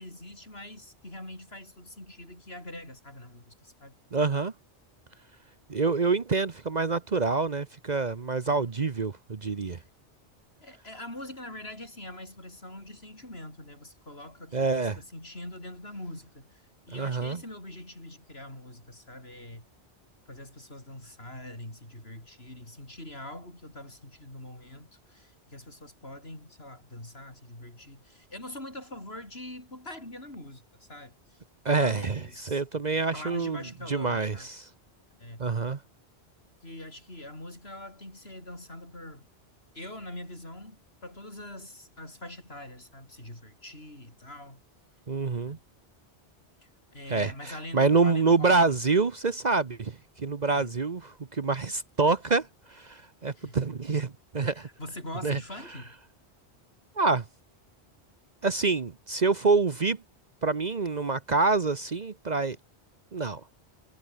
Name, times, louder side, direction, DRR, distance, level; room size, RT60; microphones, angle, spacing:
voice 1, 0.0-4.0 8.5-8.7 9.7-9.8 10.6-16.6 16.9-19.6 20.3-31.4 31.7-32.6 32.9-34.5 35.2-35.4 36.6-39.3 39.7-44.6 45.4-45.6 46.6-48.8 50.5-50.7 53.3-53.6 54.5-55.9, left 1 dB, 65° left, 7.9 m, -43 dB
voice 2, 4.1-4.5 5.7-9.8 14.5-15.0 16.9-17.4 31.6-33.6 33.9-34.7 35.4-35.8 45.1-45.6 47.1-54.7 55.2-55.4 57.0-57.2 58.4-60.0 60.4-62.6 63.1-63.4, right 4 dB, 40° right, 1.0 m, -26 dB
omnidirectional pair, 1.1 m